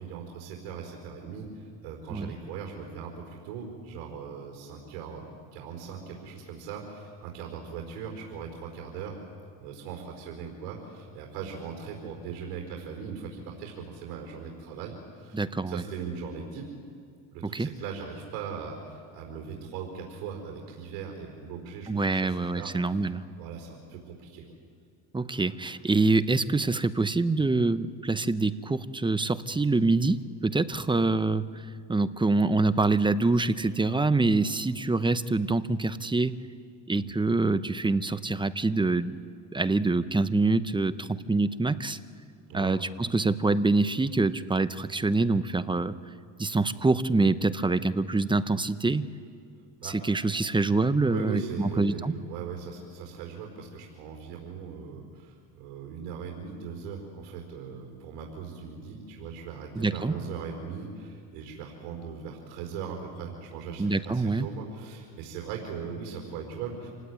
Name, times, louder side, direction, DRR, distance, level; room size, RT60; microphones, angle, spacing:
voice 1, 0.0-9.2 9.6-15.4 15.7-16.7 17.3-22.3 22.6-23.1 23.4-24.4 37.0-37.1 42.5-42.8 49.8-49.9 51.1-66.9, right 6 dB, 80° right, 2 dB, 4.7 m, -39 dB
voice 2, 15.3-15.8 17.4-17.7 21.9-23.2 25.1-36.4 36.9-39.2 39.5-42.0 42.5-45.9 46.4-49.0 49.8-52.1 59.8-60.1 63.8-64.5, right 3 dB, 10° right, 13 dB, 0.8 m, -25 dB
27.0 x 17.5 x 9.6 m, 2.3 s
supercardioid pair, 100°, 43 cm